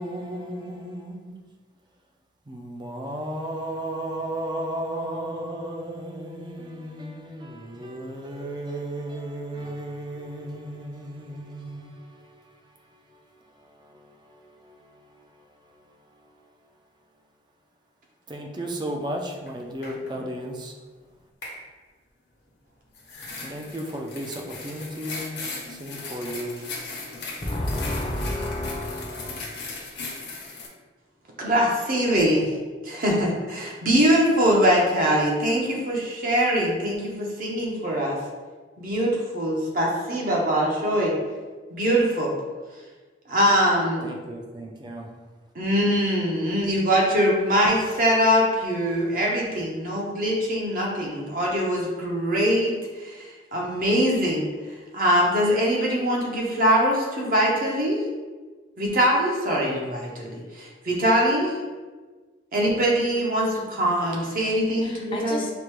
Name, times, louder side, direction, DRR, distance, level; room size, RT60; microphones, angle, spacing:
voice 1, 0.0-1.4 2.5-11.9 18.3-20.7 23.4-25.4 25.7-26.6 44.0-45.1, right 1 dB, 25° right, 0.4 m, -34 dB
sound 1, 19.5-19.6 19.8-20.2 21.4-21.6 22.9-30.7, left 3 dB, 85° left, 0.9 m, -37 dB
voice 2, 27.4-29.4 64.8-65.5, left 1 dB, 25° left, 0.5 m, -30 dB
voice 3, 31.4-32.5 32.8-38.2 38.8-41.1 41.7-42.3 43.3-44.1 45.5-54.5 54.9-58.0 58.8-61.5 62.5-65.5, equal, 50° right, 0.8 m, -23 dB
5.1 x 2.2 x 3.1 m
head